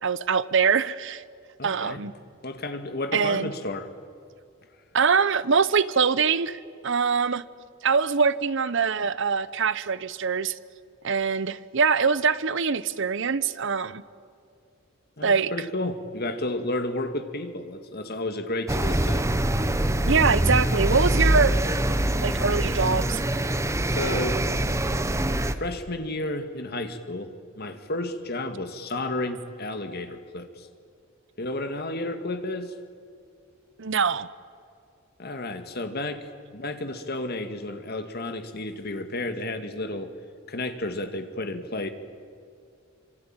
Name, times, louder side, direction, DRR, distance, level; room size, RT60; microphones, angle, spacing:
voice 1, 0.0-1.2 1.6-2.1 3.1-3.5 4.9-7.4 7.8-10.6 11.0-14.0 15.2-15.5 20.1-21.6 22.2-23.2 33.8-34.3, right 5 dB, 65° right, 16 dB, 0.9 m, -23 dB
voice 2, 1.6-2.0 2.4-3.9 15.2-19.3 23.8-24.4 25.6-30.7 31.4-32.7 35.2-36.3 36.5-40.1 40.5-41.9, left 2 dB, 50° left, 7 dB, 2.1 m, -32 dB
sound 1, 18.7-25.5, right 1 dB, 15° right, 1.1 m, -24 dB
25.5 x 25.0 x 9.0 m, 2.3 s
head